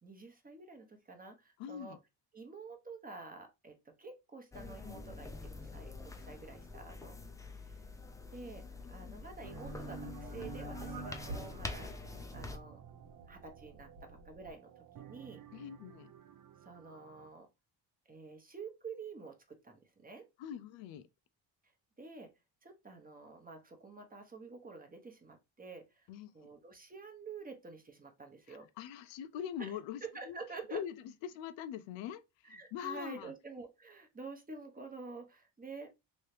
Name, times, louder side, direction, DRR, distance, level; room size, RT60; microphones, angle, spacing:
voice 1, 0.0-2.0 2.3-7.2 7.7-7.8 8.3-11.9 12.3-12.8 13.3-15.4 16.6-17.5 18.1-20.2 22.0-22.3 22.6-26.1 26.3-28.7 29.6-29.7 30.0-30.8 32.4-35.9, right 4 dB, 20° right, 0.8 m, -49 dB
voice 2, 1.6-2.0 9.0-9.2 15.5-16.1 20.4-21.1 26.1-26.5 28.5-30.4 30.7-30.9 31.2-33.3, left 10 dB, 80° left, 0.6 m, -43 dB
sound 1, 4.5-12.6, left 3 dB, 10° left, 0.4 m, -46 dB
sound 2, 9.4-14.5, right 2 dB, 80° right, 1.3 m, -47 dB
sound 3, 11.1-17.3, right 10 dB, 50° right, 0.5 m, -56 dB
3.1 x 2.8 x 3.1 m
cardioid pair, 95°, 44 cm